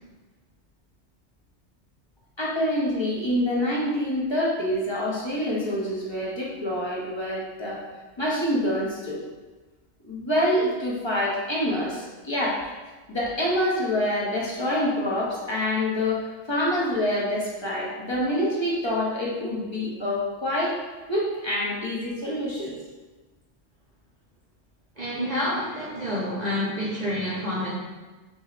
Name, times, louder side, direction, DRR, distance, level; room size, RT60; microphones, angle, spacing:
voice 1, 2.4-7.8 8.2-9.2 10.0-12.6 13.1-20.8 21.1-22.8, left 1 dB, 25° left, -6 dB, 0.7 m, -26 dB
voice 2, 25.0-27.7, left 1 dB, 40° right, -6 dB, 0.8 m, -28 dB
5.9 x 2.7 x 2.5 m, 1.2 s
omnidirectional pair, 1.3 m